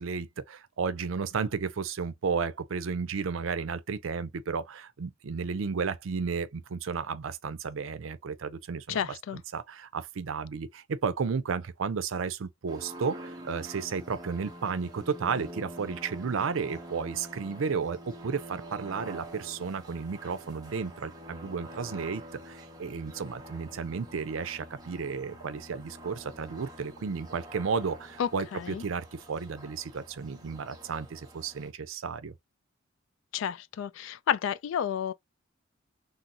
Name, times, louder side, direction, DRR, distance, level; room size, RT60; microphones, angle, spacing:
voice 1, 0.0-32.3, right 5 dB, 80° right, 0.5 m, -33 dB
voice 2, 8.9-9.4 28.2-28.8 33.3-35.1, left 8 dB, 70° left, 0.3 m, -31 dB
sound 1, 12.7-31.7, right 1 dB, 20° right, 0.8 m, -46 dB
3.8 x 2.0 x 2.7 m
head